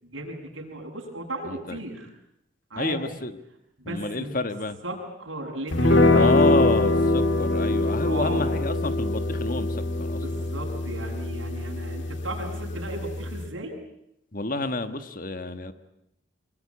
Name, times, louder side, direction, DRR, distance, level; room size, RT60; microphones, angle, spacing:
voice 1, 0.0-2.1 2.7-3.0 3.8-4.4 4.8-6.3 8.0-8.5 10.1-13.7, right 1 dB, 75° right, 1 dB, 7.2 m, -35 dB
voice 2, 1.4-1.8 2.8-3.3 3.9-4.8 6.1-10.5 14.3-15.7, left 2 dB, 45° left, 10 dB, 1.5 m, -29 dB
sound 1, 5.7-13.5, left 2 dB, 70° left, 1.8 m, -24 dB
25.0 x 23.0 x 9.6 m, 0.80 s
head